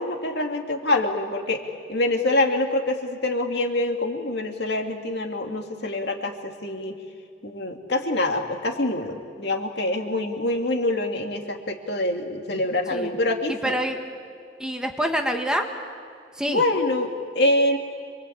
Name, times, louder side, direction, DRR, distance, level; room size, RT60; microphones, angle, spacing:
voice 1, 0.0-1.6 1.9-7.0 7.4-13.7 16.5-17.8, left 2 dB, 65° left, 3 dB, 2.4 m, -25 dB
voice 2, 13.5-14.0 14.6-15.7 16.3-16.6, equal, 5° right, 3 dB, 1.7 m, -26 dB
26.5 x 23.0 x 8.7 m, 2.3 s
head